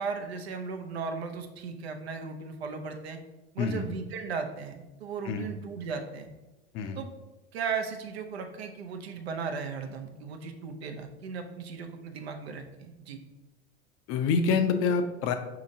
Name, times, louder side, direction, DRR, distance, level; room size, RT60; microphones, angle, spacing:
voice 1, 0.0-3.2 3.5-6.3 7.0-7.1 7.5-13.2, right 5 dB, 80° right, 4 dB, 0.6 m, -36 dB
voice 2, 14.1-15.3, left 5 dB, 45° left, 8 dB, 0.5 m, -26 dB
5.1 x 2.8 x 2.6 m, 1.0 s
hypercardioid pair, 85°, 31 cm